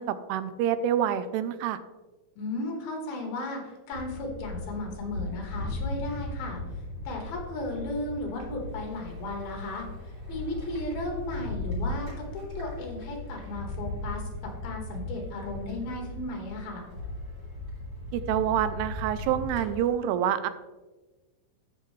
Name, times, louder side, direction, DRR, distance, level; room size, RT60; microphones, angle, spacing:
voice 1, 0.0-1.8 18.1-20.5, right 10 dB, 90° right, 12 dB, 2.7 m, -27 dB
voice 2, 2.4-6.6 7.0-9.9 10.3-16.9, left 2 dB, 70° left, 2 dB, 3.4 m, -35 dB
sound 1, 3.9-19.8, left 2 dB, 20° right, 3.2 m, -37 dB
14.0 x 5.8 x 3.2 m, 1.2 s
omnidirectional pair, 4.6 m